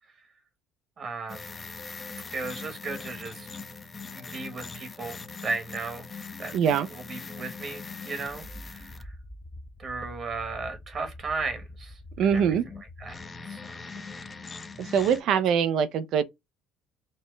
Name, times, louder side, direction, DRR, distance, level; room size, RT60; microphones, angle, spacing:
voice 1, 1.0-1.6 2.3-3.6 4.1-6.1 6.4-6.5 6.9-8.9 9.8-12.6 13.0-13.1 13.5-13.8, right 3 dB, 40° right, 1.1 m, -35 dB
sound 1, 1.3-15.2, left 4 dB, 25° left, 0.5 m, -42 dB
voice 2, 6.5-6.9 12.2-12.6 14.8-16.2, right 7 dB, 60° right, 0.4 m, -23 dB
4.2 x 2.0 x 3.1 m
cardioid pair, 125°, 0 cm